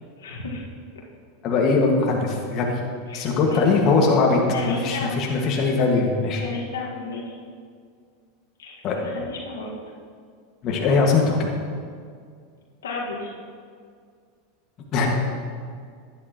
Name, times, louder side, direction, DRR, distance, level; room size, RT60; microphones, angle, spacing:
voice 1, 0.2-0.6 3.1-3.7 4.5-5.2 6.4-7.2 8.6-9.7 12.8-13.3, left 3 dB, 90° left, -2 dB, 1.7 m, -33 dB
voice 2, 1.4-2.7 3.1-6.4 8.8-9.0 10.6-11.5 14.9-15.1, left 4 dB, 45° left, -1 dB, 1.8 m, -21 dB
11.5 x 10.0 x 3.0 m, 2.1 s
hypercardioid pair, 100°, 0 cm